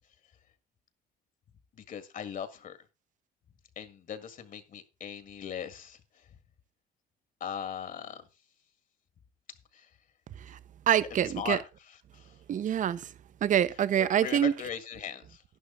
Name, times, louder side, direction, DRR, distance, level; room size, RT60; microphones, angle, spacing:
voice 1, 1.7-2.8 3.8-6.3 7.4-8.3 9.7-9.9 11.2-12.4 14.0-15.4, left 8 dB, 50° left, 1.8 m, -39 dB
voice 2, 10.9-11.6 12.5-13.1 13.4-14.5, right 10 dB, 50° right, 0.8 m, -26 dB
11.0 x 11.0 x 3.8 m
cardioid pair, 110°, 17 cm